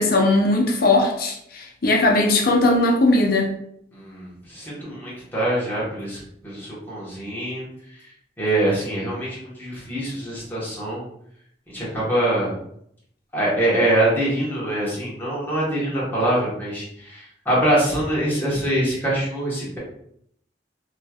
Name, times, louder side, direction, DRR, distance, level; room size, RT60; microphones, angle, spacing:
voice 1, 0.0-3.5, left 2 dB, 55° left, 1 dB, 0.6 m, -19 dB
voice 2, 3.9-7.7 8.4-11.0 11.7-12.6 13.3-19.8, right 1 dB, 10° left, -7 dB, 1.3 m, -24 dB
3.1 x 3.0 x 2.4 m, 0.71 s
head